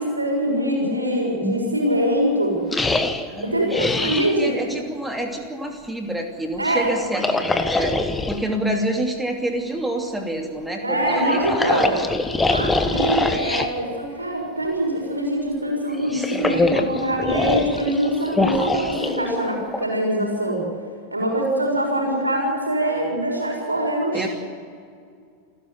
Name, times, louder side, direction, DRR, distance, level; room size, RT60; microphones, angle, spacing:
voice 1, 0.0-2.6 3.4-4.5 6.6-6.9 10.8-12.0 12.5-20.6 21.1-24.3, right 1 dB, 80° right, 0 dB, 6.7 m, -23 dB
sound 1, 2.7-4.4 7.1-8.4 11.0-13.7 15.9-19.8, left 3 dB, 10° left, 1.4 m, -24 dB
voice 2, 3.3-3.7 4.0-4.1 4.4-12.2 12.8-12.9 16.1-17.1 17.4-17.6 24.1-24.3, right 1 dB, 5° right, 3 dB, 2.8 m, -28 dB
29.0 x 12.5 x 9.8 m, 2.2 s
figure-of-eight pair, 90°, 0 cm